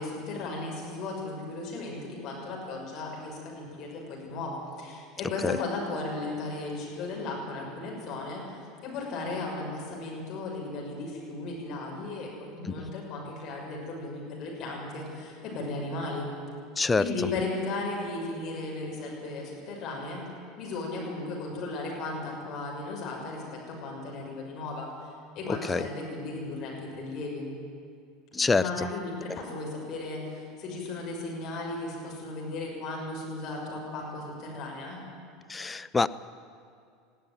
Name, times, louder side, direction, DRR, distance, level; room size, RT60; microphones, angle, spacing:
voice 1, 0.0-16.3 16.9-20.2 20.6-24.9 25.3-27.5 28.5-35.0, left 2 dB, 45° left, -2 dB, 6.3 m, -35 dB
voice 2, 16.8-17.1 25.7-25.8 28.3-28.6 29.3-29.4 35.5-36.1, left 4 dB, 15° left, 12 dB, 0.6 m, -25 dB
19.5 x 16.0 x 9.3 m, 2.3 s
figure-of-eight pair, 75°, 0 cm